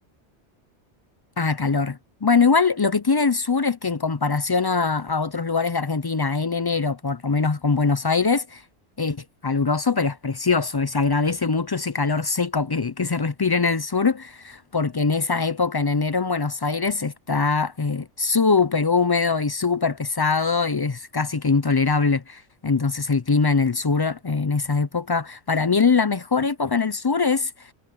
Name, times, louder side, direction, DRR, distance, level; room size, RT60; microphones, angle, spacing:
voice 1, 1.4-8.6 9.0-27.7, left 4 dB, 40° left, 0.3 m, -22 dB
omnidirectional pair, 1.2 m